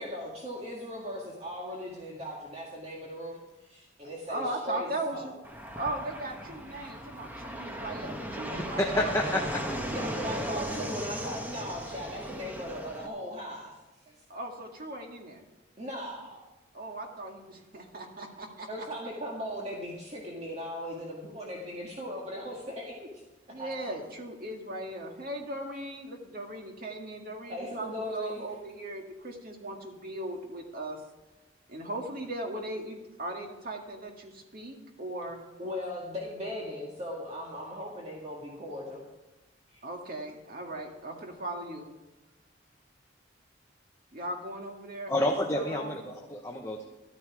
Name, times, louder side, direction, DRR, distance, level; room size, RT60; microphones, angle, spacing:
voice 1, 0.0-5.3 9.9-13.8 14.1-14.2 15.8-16.4 18.7-23.2 23.6-23.9 27.5-28.4 35.6-39.0 39.7-39.8, equal, 35° right, -3 dB, 1.9 m, -38 dB
voice 2, 4.3-5.3 5.8-9.5 9.9-10.9 14.3-15.4 16.7-18.9 23.5-31.0 31.7-35.4 39.8-41.9 44.1-45.1 45.5-45.9, right 1 dB, 50° right, 2 dB, 2.0 m, -38 dB
Fixed-wing aircraft airplane, 5.4-13.1, equal, 10° right, 1.2 m, -37 dB
voice 3, 8.9-9.8 45.1-46.9, left 1 dB, 15° left, 1 dB, 1.0 m, -29 dB
13.0 x 12.5 x 4.8 m, 1.1 s
head